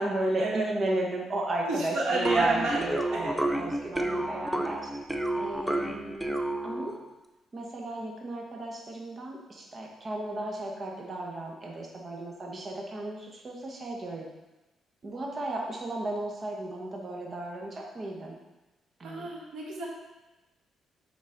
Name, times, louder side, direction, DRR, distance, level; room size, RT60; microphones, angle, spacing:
voice 1, 0.0-4.9 5.4-6.9 7.5-14.3 15.0-18.3 19.0-19.3, right 1 dB, 30° right, -1 dB, 0.9 m, -34 dB
voice 2, 1.6-2.8 3.1-3.2 19.0-19.9, right 3 dB, 85° right, -3 dB, 1.6 m, -29 dB
sound 1, 2.3-7.0, right 1 dB, 5° right, 0.5 m, -30 dB
9.9 x 3.9 x 3.8 m, 1.1 s
cardioid pair, 145°, 0 cm